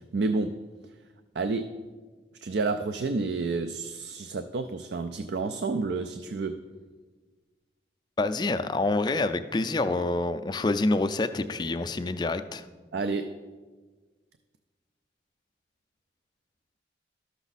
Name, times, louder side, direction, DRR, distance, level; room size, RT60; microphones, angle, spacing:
voice 1, 0.1-0.6 1.4-1.7 2.4-6.6 12.9-13.3, right 3 dB, 70° right, 9 dB, 0.4 m, -29 dB
voice 2, 8.2-12.6, left 2 dB, 25° left, 10 dB, 0.3 m, -27 dB
12.5 x 6.1 x 4.1 m, 1.4 s
head